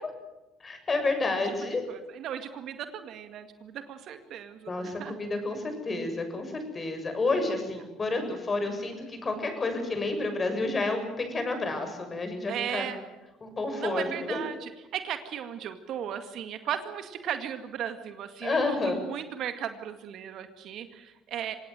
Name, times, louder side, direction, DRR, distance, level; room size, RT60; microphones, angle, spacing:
voice 1, 0.6-1.8 4.7-12.9 13.4-14.4 18.4-18.9, left 3 dB, 30° left, 6 dB, 7.1 m, -30 dB
voice 2, 1.9-5.2 7.5-7.6 12.5-13.0 13.8-21.6, right 9 dB, 60° right, 9 dB, 2.1 m, -36 dB
26.0 x 18.0 x 7.9 m, 1.1 s
hypercardioid pair, 60°, 0 cm